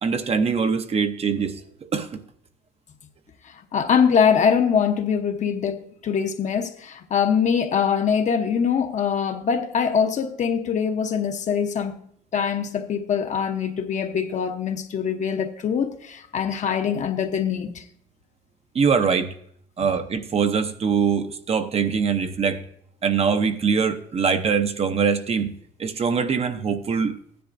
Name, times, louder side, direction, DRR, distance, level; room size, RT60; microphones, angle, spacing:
voice 1, 0.0-1.6 1.9-2.2 18.7-19.3 19.8-22.6 23.0-25.5 25.8-27.1, right 6 dB, 35° right, 0.7 m, -23 dB
voice 2, 3.4-11.9 12.3-17.8, left 7 dB, 45° left, 0.9 m, -23 dB
15.0 x 10.0 x 2.6 m
cardioid pair, 110°, 17 cm